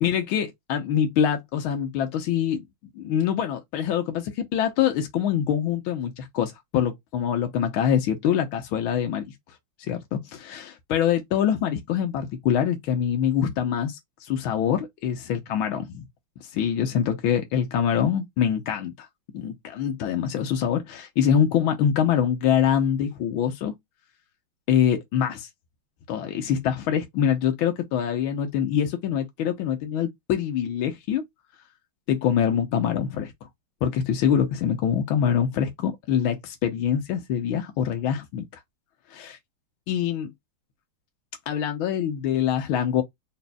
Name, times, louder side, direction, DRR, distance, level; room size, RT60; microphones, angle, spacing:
voice 1, 0.0-2.6 3.0-9.3 9.8-16.0 16.4-19.1 19.3-23.7 24.7-25.5 26.1-31.2 32.1-33.3 33.8-38.4 39.1-39.4 39.9-40.3 41.5-43.0, left 9 dB, 80° left, 1.6 m, -24 dB
4.1 x 3.9 x 2.2 m
omnidirectional pair, 2.2 m